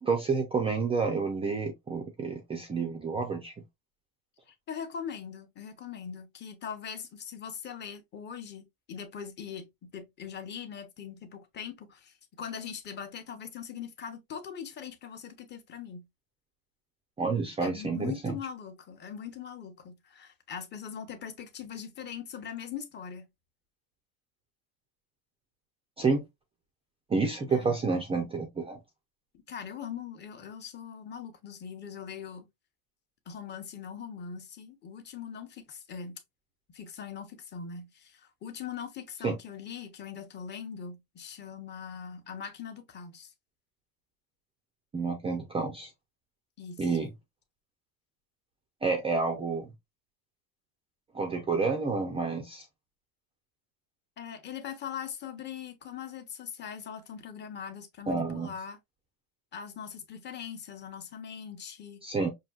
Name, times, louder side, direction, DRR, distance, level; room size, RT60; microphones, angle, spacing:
voice 1, 0.0-3.5 17.2-18.3 26.0-26.2 27.1-28.8 39.2-39.4 44.9-45.9 46.8-47.1 48.8-49.7 51.1-52.7 58.1-58.5 62.0-62.3, right 4 dB, 15° right, 0.4 m, -29 dB
voice 2, 4.5-16.1 17.6-23.2 27.5-27.8 29.5-32.5 33.3-36.2 36.7-43.3 46.6-47.0 54.2-58.8 59.5-62.0, left 7 dB, 25° left, 0.8 m, -41 dB
5.7 x 2.7 x 2.3 m
cardioid pair, 155°, 42 cm